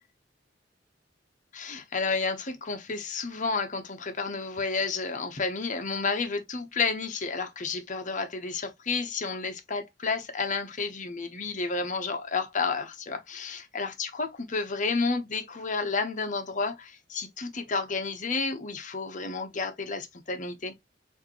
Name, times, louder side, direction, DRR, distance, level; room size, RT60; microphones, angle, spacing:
voice 1, 1.5-20.7, left 4 dB, 45° left, 0.9 m, -31 dB
6.4 x 2.7 x 2.9 m
head